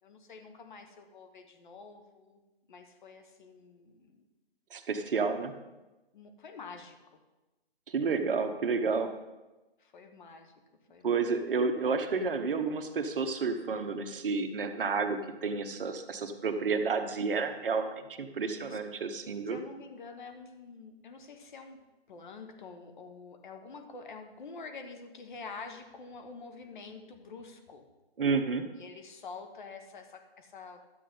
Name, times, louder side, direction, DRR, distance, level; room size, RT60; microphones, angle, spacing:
voice 1, 0.0-2.4 2.7-4.2 6.1-7.2 9.8-10.5 10.9-11.3 18.4-19.0 19.5-21.8 22.1-27.9 28.7-30.8, left 4 dB, 50° left, 5 dB, 1.5 m, -47 dB
voice 2, 4.7-5.5 7.9-9.1 11.0-19.6 28.2-28.7, right 4 dB, 55° right, 7 dB, 1.1 m, -30 dB
12.5 x 7.8 x 3.8 m, 1.1 s
hypercardioid pair, 155°, 32 cm